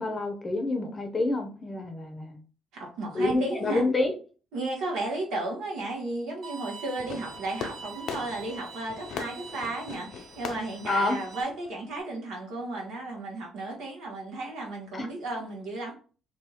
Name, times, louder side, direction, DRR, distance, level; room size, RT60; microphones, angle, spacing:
voice 1, 0.0-2.4 3.1-4.1 10.9-11.2 14.9-15.1, left 2 dB, 25° left, 4 dB, 0.6 m, -28 dB
voice 2, 2.7-3.8 4.5-15.9, right 2 dB, 90° right, -1 dB, 1.3 m, -34 dB
Bowed string instrument, 6.4-11.4, right 6 dB, 50° right, 1.5 m, -45 dB
Fireworks, 7.0-12.0, left 7 dB, 70° left, 0.4 m, -41 dB
2.7 x 2.4 x 4.2 m, 0.39 s
cardioid pair, 125°, 0 cm